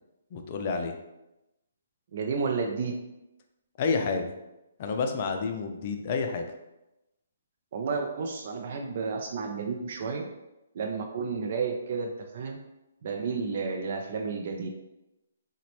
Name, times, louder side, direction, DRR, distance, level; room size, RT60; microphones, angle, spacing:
voice 1, 0.3-0.9 3.8-4.3 4.8-6.5, left 4 dB, 40° left, 4 dB, 0.4 m, -29 dB
voice 2, 2.1-3.0 7.7-10.3 10.7-12.6 13.0-14.7, right 5 dB, 50° right, 2 dB, 0.3 m, -31 dB
3.8 x 2.1 x 3.0 m, 0.95 s
hypercardioid pair, 150°, 0 cm